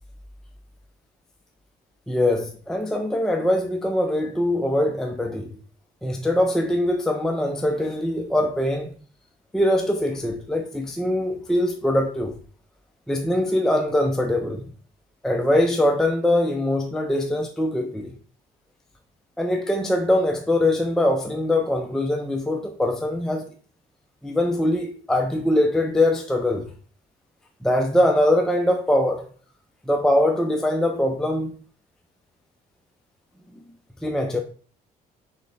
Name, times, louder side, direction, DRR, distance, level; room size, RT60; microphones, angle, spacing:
voice 1, 2.1-5.6 6.0-8.9 9.5-12.3 13.1-14.7 15.2-18.1 19.4-23.5 24.2-26.7 27.6-29.3 29.9-31.5 34.0-34.4, left 1 dB, 5° left, 0.4 m, -22 dB
3.2 x 3.2 x 3.9 m
cardioid pair, 110°, 17 cm